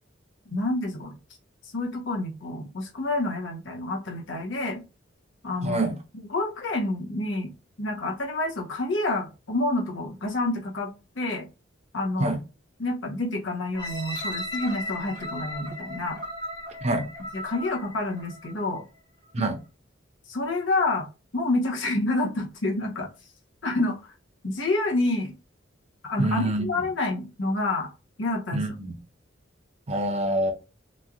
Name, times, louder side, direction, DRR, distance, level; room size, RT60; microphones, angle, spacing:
voice 1, 0.5-1.2 1.6-4.8 5.4-5.9 6.3-7.5 7.8-11.5 11.9-12.3 12.8-16.2 17.3-18.8 19.4-19.5 20.3-21.1 21.3-23.1 23.6-24.1 24.4-25.3 26.0-27.9 28.2-28.6, left 2 dB, 75° left, 1 dB, 0.8 m, -28 dB
voice 2, 5.6-6.0 12.2-12.4 16.8-17.1 19.3-19.6 26.2-26.7 28.5-28.9 29.9-30.5, right 1 dB, 35° right, 4 dB, 0.6 m, -25 dB
sound 1, 13.7-18.7 19.3-19.4, left 1 dB, 20° left, 1.0 m, -36 dB
3.0 x 2.5 x 2.3 m, 0.30 s
head